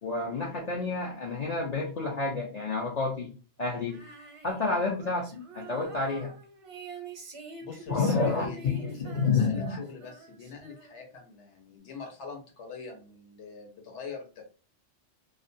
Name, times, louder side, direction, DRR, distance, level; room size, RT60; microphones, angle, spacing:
voice 1, 0.0-3.3 3.6-4.0 4.4-5.3 5.5-6.3 7.9-9.8, left 4 dB, 50° left, -2 dB, 0.5 m, -29 dB
Female singing, 3.8-11.2, right 3 dB, 45° right, 0.4 m, -46 dB
voice 2, 7.6-14.4, left 5 dB, 80° left, 2 dB, 1.1 m, -43 dB
2.4 x 2.2 x 2.5 m, 0.35 s
omnidirectional pair, 1.2 m